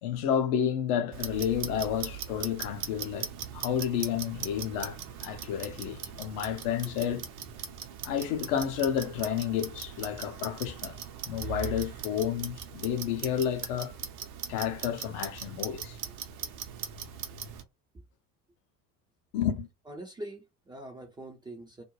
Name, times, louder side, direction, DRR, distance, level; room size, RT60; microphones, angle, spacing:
voice 1, 0.0-7.3 8.0-11.0 11.2-13.9 14.5-16.0 19.3-19.7, left 9 dB, 45° left, 0.6 m, -31 dB
Clock, 1.1-17.6, right 8 dB, 60° right, 0.8 m, -40 dB
voice 2, 19.9-21.8, right 1 dB, 10° right, 0.4 m, -43 dB
2.4 x 2.1 x 3.0 m
figure-of-eight pair, 70°, 49 cm